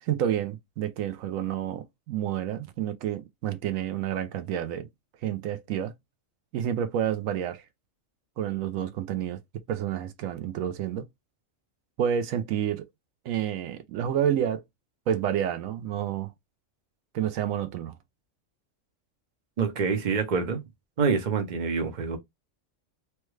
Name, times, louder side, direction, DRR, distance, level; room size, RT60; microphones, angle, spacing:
voice 1, 0.0-4.9 5.2-5.9 6.5-7.6 8.4-9.4 9.7-11.0 12.0-12.9 13.2-14.6 15.1-16.3 17.1-18.0, right 10 dB, 90° right, 1.0 m, -29 dB
voice 2, 19.6-20.6 21.0-22.2, right 5 dB, 40° right, 0.8 m, -26 dB
3.1 x 2.2 x 3.1 m
omnidirectional pair, 1.4 m